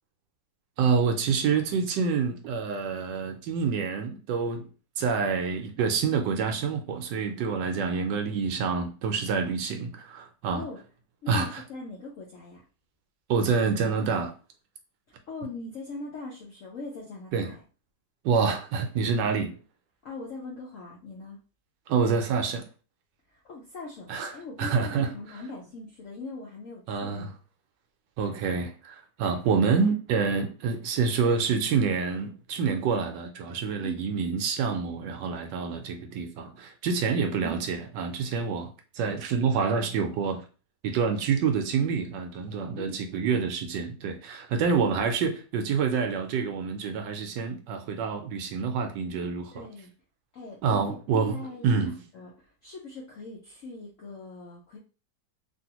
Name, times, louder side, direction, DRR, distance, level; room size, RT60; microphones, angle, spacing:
voice 1, 0.8-4.7 5.0-10.6 11.3-11.5 13.3-14.3 17.3-17.5 18.2-19.5 21.9-22.6 24.1-24.3 24.6-25.1 26.9-27.3 28.2-40.4 40.8-49.7 50.6-51.3 51.6-51.9, right 5 dB, 75° right, 1.1 m, -27 dB
voice 2, 11.2-12.6 15.3-17.6 20.0-21.4 23.3-27.3 33.8-34.2 37.0-37.4 42.7-43.1 49.5-49.9 50.3-54.8, left 3 dB, 70° left, 0.7 m, -41 dB
3.3 x 2.5 x 2.8 m
omnidirectional pair, 2.1 m